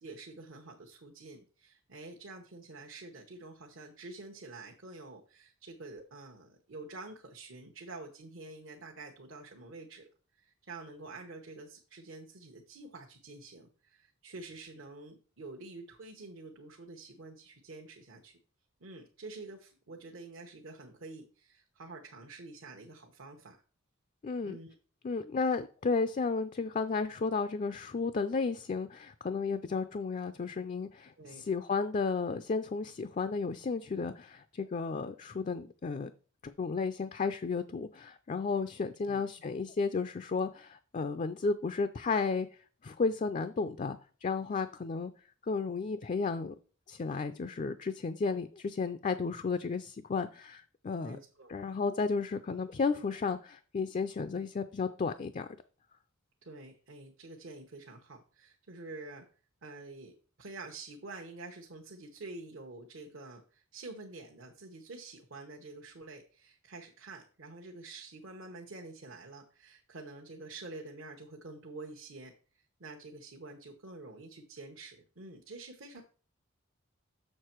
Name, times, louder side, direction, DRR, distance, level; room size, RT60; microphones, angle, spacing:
voice 1, 0.0-10.1 10.4-18.4 18.8-23.6 24.4-24.7 31.2-31.5 39.0-39.2 51.0-51.6 56.4-59.2 59.6-60.1 60.4-72.3 72.8-76.0, right 3 dB, 65° right, 1 dB, 1.0 m, -48 dB
voice 2, 24.2-24.6 25.0-36.1 36.4-42.5 42.8-45.1 45.4-46.5 46.9-51.2 51.5-55.5, left 4 dB, 35° left, 10 dB, 0.4 m, -33 dB
6.6 x 6.6 x 4.4 m, 0.39 s
head